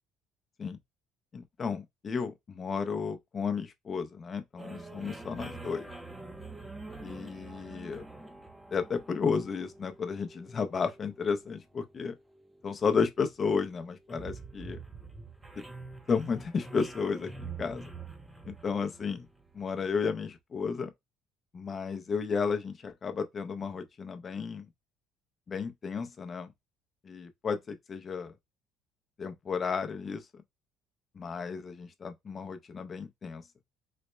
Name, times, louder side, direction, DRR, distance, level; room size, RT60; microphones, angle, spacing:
voice 1, 1.3-5.9 7.0-8.1 8.7-12.1 12.6-14.8 15.6-15.7 16.1-17.9 18.4-19.3 19.5-20.9 21.5-24.7 25.5-26.5 27.0-28.3 29.2-30.4 31.1-33.4, left 5 dB, 35° left, 0.6 m, -33 dB
sound 1, 4.6-20.0, right 3 dB, 10° right, 0.6 m, -46 dB
4.1 x 2.1 x 3.2 m
cardioid pair, 105°, 0 cm